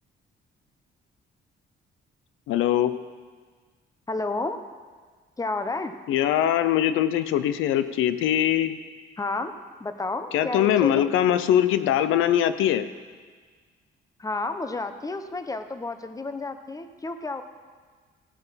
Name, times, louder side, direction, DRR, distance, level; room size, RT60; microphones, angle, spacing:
voice 1, 2.5-2.9 6.1-8.8 10.3-12.9, left 11 dB, 90° left, 12 dB, 0.6 m, -22 dB
voice 2, 4.1-4.6 5.4-5.9 9.2-9.5 9.8-11.1 14.2-17.4, left 3 dB, 15° left, 9 dB, 0.9 m, -31 dB
16.0 x 7.9 x 5.7 m, 1.5 s
cardioid pair, 90°, 20 cm